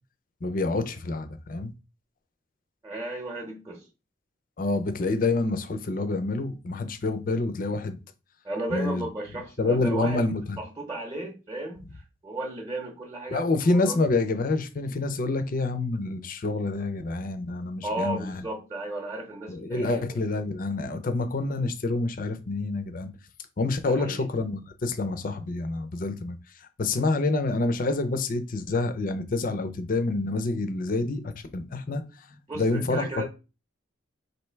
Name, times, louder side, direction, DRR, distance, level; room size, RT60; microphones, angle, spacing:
voice 1, 0.4-1.7 4.6-8.0 8.7-9.1 9.6-10.6 13.3-18.4 19.5-23.1 23.6-26.4 26.8-32.0 32.3-33.3, left 3 dB, 45° left, 0.5 m, -27 dB
voice 2, 2.8-3.8 8.4-10.2 10.5-14.0 17.8-20.2 23.8-24.2 32.5-33.3, right 2 dB, 20° right, 0.8 m, -34 dB
3.2 x 2.7 x 4.4 m
head